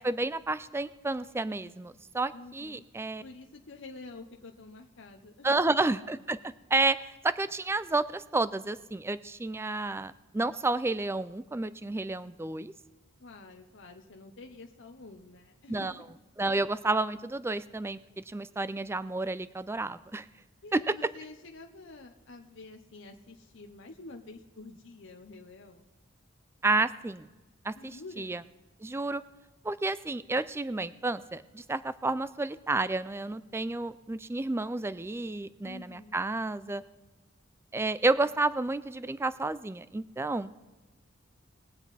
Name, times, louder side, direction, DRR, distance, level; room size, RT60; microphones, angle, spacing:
voice 1, 0.0-3.2 5.4-6.4 6.7-12.7 15.7-15.9 16.4-20.3 20.7-20.8 26.6-27.3 27.6-27.7 28.2-28.4 28.8-29.2 29.6-36.8 37.7-40.5, right 2 dB, 15° right, 15 dB, 0.3 m, -30 dB
voice 2, 2.3-2.8 3.2-5.8 13.2-16.0 20.6-25.9 27.7-28.4 35.6-36.2, left 3 dB, 65° left, 3 dB, 0.8 m, -48 dB
21.0 x 8.1 x 4.1 m, 1.2 s
head